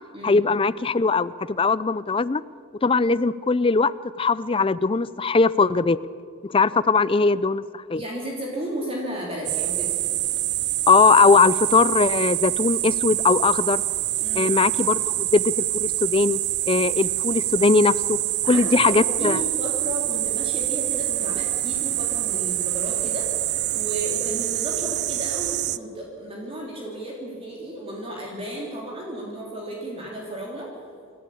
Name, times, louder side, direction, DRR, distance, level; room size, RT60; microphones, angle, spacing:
voice 1, 0.2-2.4 2.8-6.0 6.4-8.0 10.9-13.8 14.4-16.4 16.7-18.2 18.5-19.4, left 4 dB, 25° left, 17 dB, 0.4 m, -20 dB
voice 2, 7.9-10.0 14.2-14.5 18.4-23.4 23.7-30.9, right 1 dB, 25° right, -3 dB, 3.3 m, -33 dB
sound 1, 9.4-25.8, right 16 dB, 50° right, 0.5 m, -26 dB
28.0 x 12.5 x 8.6 m, 2.3 s
head